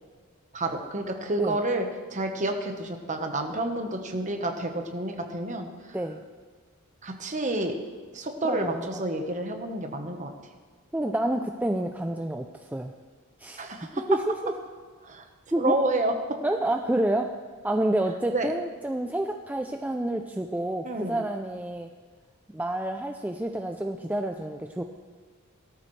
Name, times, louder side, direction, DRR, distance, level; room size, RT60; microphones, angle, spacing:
voice 1, 0.5-1.9 2.1-5.7 7.0-7.7 8.1-10.3 13.6-14.0 15.0-15.2 15.6-16.4 18.3-18.5 20.8-21.2, right 2 dB, 35° right, 4 dB, 1.2 m, -29 dB
voice 2, 8.4-8.9 10.9-12.9 13.4-13.6 14.1-14.5 15.5-15.8 16.4-17.3 17.6-21.9 22.5-24.8, right 1 dB, 5° right, 4 dB, 0.4 m, -28 dB
17.5 x 13.5 x 3.3 m, 1.6 s
head